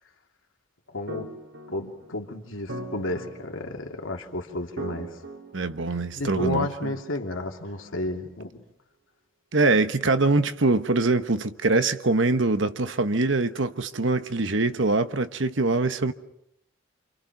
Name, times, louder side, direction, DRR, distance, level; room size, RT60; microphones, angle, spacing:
voice 1, 0.9-1.3 1.7-5.2 6.1-8.6, left 2 dB, 80° left, 2.7 m, -32 dB
sound 1, 1.1-7.8, right 2 dB, 85° right, 5.3 m, -40 dB
voice 2, 5.5-6.9 9.5-16.1, right 3 dB, 65° right, 1.2 m, -23 dB
28.5 x 27.0 x 6.0 m
head